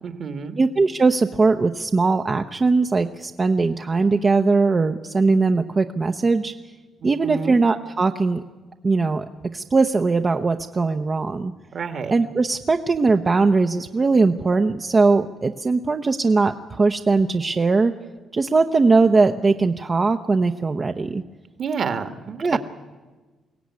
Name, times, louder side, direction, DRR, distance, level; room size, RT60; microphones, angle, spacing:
voice 1, 0.0-0.6 7.0-7.6 11.7-12.1 21.6-22.6, right 5 dB, 55° right, 9 dB, 1.7 m, -29 dB
voice 2, 0.6-6.5 7.0-8.4 8.8-9.2 9.5-11.5 12.1-17.9 18.3-21.2 22.4-22.6, right 3 dB, 30° right, 5 dB, 0.8 m, -20 dB
23.0 x 16.5 x 9.6 m, 1.3 s
cardioid pair, 90°, 0 cm